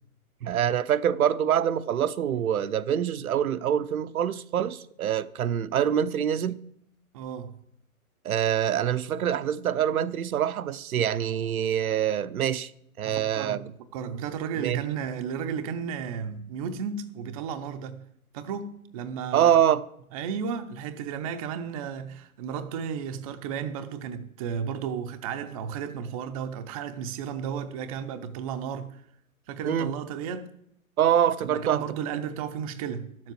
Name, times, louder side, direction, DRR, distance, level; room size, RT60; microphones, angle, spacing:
voice 1, 0.4-6.6 8.2-12.7 13.0-13.6 14.6-14.8 19.3-19.8 29.6-29.9 31.0-31.8, right 9 dB, 75° right, 0.8 m, -25 dB
voice 2, 7.1-7.6 13.0-13.6 13.9-18.0 18.3-19.5 20.1-29.0 29.5-30.5 31.4-33.3, right 7 dB, 25° right, 0.6 m, -33 dB
11.5 x 7.5 x 7.6 m
hypercardioid pair, 145°, 44 cm